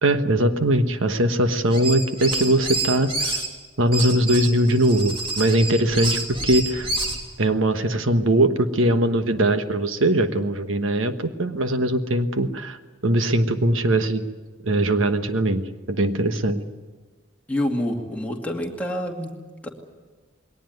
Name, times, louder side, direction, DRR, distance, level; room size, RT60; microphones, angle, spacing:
voice 1, 0.0-3.1 3.8-6.9 7.4-12.8 13.0-14.2 14.6-16.6, right 1 dB, 80° right, 9 dB, 1.3 m, -21 dB
sound 1, 1.7-3.5 3.9-7.2, right 2 dB, 25° right, 2.9 m, -28 dB
voice 2, 17.5-19.4 19.6-19.7, left 1 dB, 5° left, 0 dB, 2.2 m, -27 dB
21.5 x 18.5 x 9.4 m, 1.3 s
head